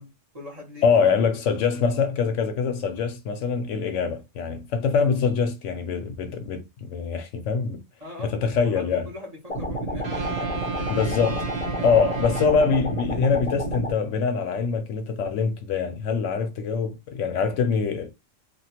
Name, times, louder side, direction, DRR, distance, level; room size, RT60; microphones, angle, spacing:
voice 1, 0.0-1.1 1.7-2.1 8.0-11.8, left 2 dB, 30° right, 1.2 m, -42 dB
voice 2, 0.8-7.8 8.4-9.1 10.9-11.4 11.8-18.1, left 5 dB, 75° left, 0.9 m, -24 dB
sound 1, 9.5-14.0, right 1 dB, 35° left, 0.8 m, -29 dB
sound 2, 10.0-13.3, right 5 dB, 65° right, 1.6 m, -35 dB
2.9 x 2.3 x 2.8 m
omnidirectional pair, 1.4 m